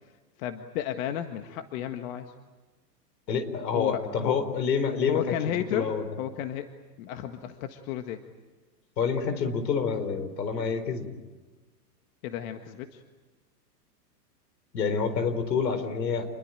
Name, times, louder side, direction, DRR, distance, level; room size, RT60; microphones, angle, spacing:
voice 1, 0.4-2.3 3.7-4.3 5.1-5.9 6.2-6.7 7.0-8.2 12.2-13.0, left 11 dB, 55° left, 7 dB, 1.7 m, -33 dB
voice 2, 3.3-6.0 9.0-11.1 14.7-16.3, left 5 dB, 80° left, 10 dB, 4.4 m, -28 dB
28.5 x 22.0 x 9.0 m, 1.2 s
hypercardioid pair, 115°, 49 cm